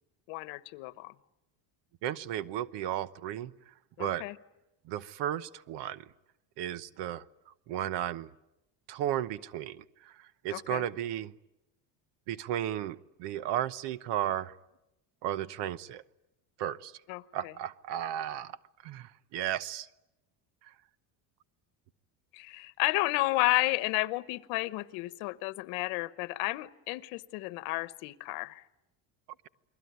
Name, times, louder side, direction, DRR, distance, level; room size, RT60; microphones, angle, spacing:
voice 1, 0.3-1.1 4.0-4.4 10.5-10.8 17.1-17.5 22.3-28.6, left 21 dB, 80° left, 15 dB, 1.2 m, -32 dB
voice 2, 2.0-3.5 4.0-4.2 4.9-6.0 6.6-7.2 7.7-8.3 8.9-10.1 10.4-11.3 12.3-14.5 15.2-16.0 16.6-16.9 17.3-18.6 18.8-19.9, right 11 dB, 65° right, 16 dB, 1.0 m, -34 dB
29.0 x 22.0 x 9.4 m, 0.94 s
cardioid pair, 135°, 46 cm